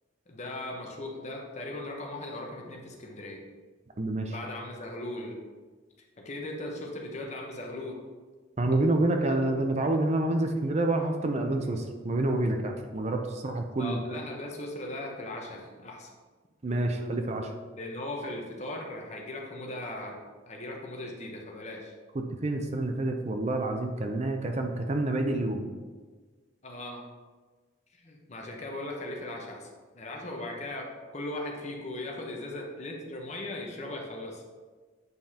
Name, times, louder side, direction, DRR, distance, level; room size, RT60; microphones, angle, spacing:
voice 1, 0.3-3.4 4.3-5.4 6.2-8.0 13.8-16.1 17.8-20.2 20.5-21.9 26.6-27.1 27.9-34.4, left 1 dB, 35° left, 1 dB, 0.9 m, -38 dB
voice 2, 4.0-4.3 8.6-14.2 16.6-17.5 22.1-25.6, right 2 dB, 35° right, 4 dB, 0.5 m, -28 dB
8.0 x 5.3 x 2.8 m, 1.4 s
head